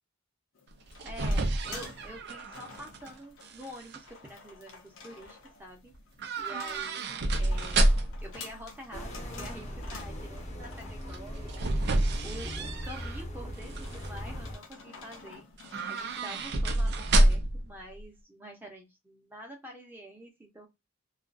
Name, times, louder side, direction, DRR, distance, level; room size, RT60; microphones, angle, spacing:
sound 1, 0.6-16.4, left 4 dB, 70° left, 0.7 m, -50 dB
sound 2, 0.7-3.1 3.4-4.0 6.2-8.3 11.1-13.2 13.6-14.1 15.6-17.7 17.9-18.0, right 1 dB, 55° right, 0.5 m, -28 dB
voice 1, 1.0-5.9 6.4-7.9 8.2-11.8 12.2-15.5 15.9-20.7, equal, 10° right, 1 dB, 0.8 m, -47 dB
sound 3, 8.9-14.6, equal, 35° left, 0.7 m, -39 dB
2.4 x 2.4 x 2.4 m, 0.21 s
head